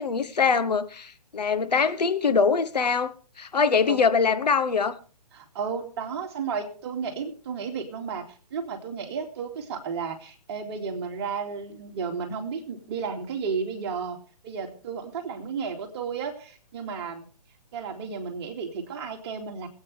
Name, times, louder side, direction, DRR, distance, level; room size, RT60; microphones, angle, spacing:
voice 1, 0.0-4.9, left 5 dB, 75° left, 11 dB, 1.3 m, -23 dB
voice 2, 5.3-14.2 14.4-17.3 17.7-19.7, right 6 dB, 40° right, 3 dB, 2.5 m, -33 dB
24.0 x 8.8 x 3.4 m, 0.39 s
figure-of-eight pair, 135°, 21 cm